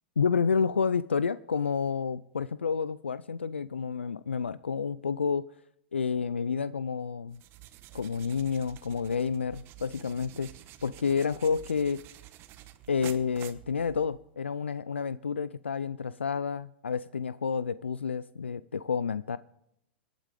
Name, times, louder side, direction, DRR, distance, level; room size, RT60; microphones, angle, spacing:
voice 1, 0.2-5.5 5.9-7.4 7.9-10.5 10.8-12.0 12.9-19.4, left 6 dB, 85° left, 17 dB, 0.4 m, -30 dB
sound 1, 7.3-14.3, right 14 dB, 40° right, 1.2 m, -49 dB
25.5 x 9.1 x 3.5 m, 0.77 s
hypercardioid pair, 105°, 6 cm